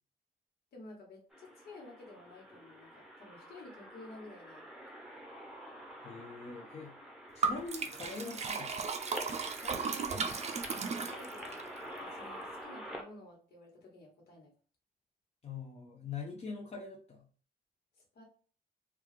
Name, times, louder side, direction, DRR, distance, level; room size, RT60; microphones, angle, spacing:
voice 1, 0.7-4.7 9.6-10.4 10.8-14.5 18.1-18.2, left 2 dB, 85° left, -1 dB, 1.4 m, -52 dB
sound 1, 1.3-13.0, equal, 5° right, 0.7 m, -47 dB
voice 2, 6.0-6.9 7.3-8.7 15.4-17.3, left 4 dB, 40° left, 0 dB, 0.6 m, -43 dB
Liquid, 7.4-11.6, right 5 dB, 45° right, 0.5 m, -35 dB
3.4 x 2.3 x 3.2 m, 0.42 s
wide cardioid pair, 140°, 16 cm